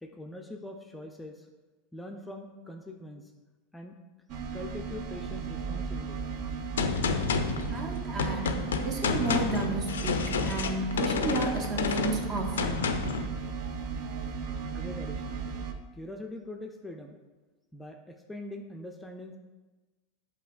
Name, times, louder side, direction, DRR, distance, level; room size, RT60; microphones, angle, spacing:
voice 1, 0.0-1.5 1.9-3.3 3.7-4.0 4.5-6.4 14.7-15.5 15.9-17.2 17.7-19.4, left 1 dB, 10° left, 2 dB, 0.4 m, -43 dB
sound 1, 4.3-15.7, right 5 dB, 55° right, 0.4 m, -35 dB
Gunshot gunfire, 6.8-13.3, left 5 dB, 90° left, 0.3 m, -30 dB
voice 2, 7.7-13.0, right 2 dB, 40° right, 2 dB, 0.9 m, -33 dB
7.7 x 2.8 x 2.5 m, 1.2 s
hypercardioid pair, 105°, 0 cm